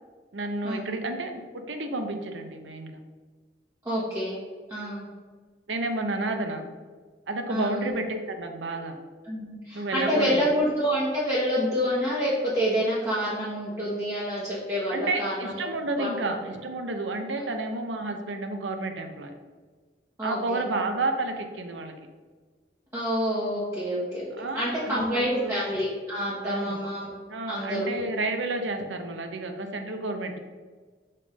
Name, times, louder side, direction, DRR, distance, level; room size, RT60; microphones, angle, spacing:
voice 1, 0.3-3.0 5.7-6.7 7.3-9.0 9.7-10.5 14.9-19.3 20.2-21.9 24.4-25.5 26.4-26.8 27.3-30.4, right 2 dB, 80° right, 6 dB, 0.7 m, -31 dB
voice 2, 3.8-4.4 4.7-5.1 7.5-7.9 9.2-16.3 17.4-17.5 20.2-20.6 22.9-24.3 24.5-27.1 27.5-28.0, equal, 20° right, -9 dB, 1.2 m, -28 dB
5.4 x 3.4 x 5.2 m, 1.4 s
head